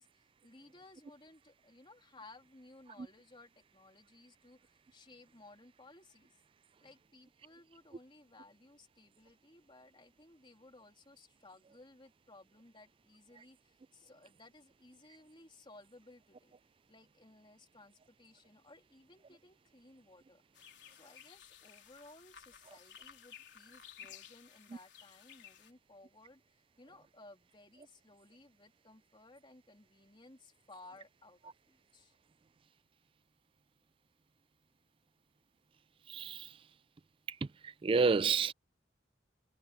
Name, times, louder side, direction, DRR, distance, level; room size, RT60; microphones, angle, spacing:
voice 1, 0.0-6.3 6.8-16.6 16.9-20.4 20.9-32.1, left 2 dB, 30° left, 3.2 m, -59 dB
sound 1, 20.5-25.7, left 8 dB, 75° left, 4.0 m, -55 dB
voice 2, 36.1-36.5 37.6-38.5, right 5 dB, 30° right, 0.3 m, -29 dB
head